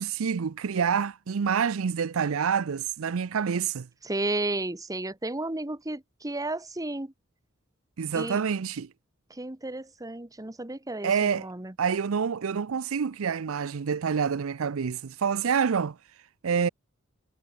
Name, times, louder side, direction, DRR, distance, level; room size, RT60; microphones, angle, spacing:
voice 1, 0.0-3.9 8.0-8.9 11.0-11.5 11.8-16.0 16.4-16.7, right 6 dB, 80° right, 0.5 m, -27 dB
voice 2, 4.0-7.1 8.1-8.4 9.3-11.7, right 2 dB, 15° right, 1.2 m, -33 dB
head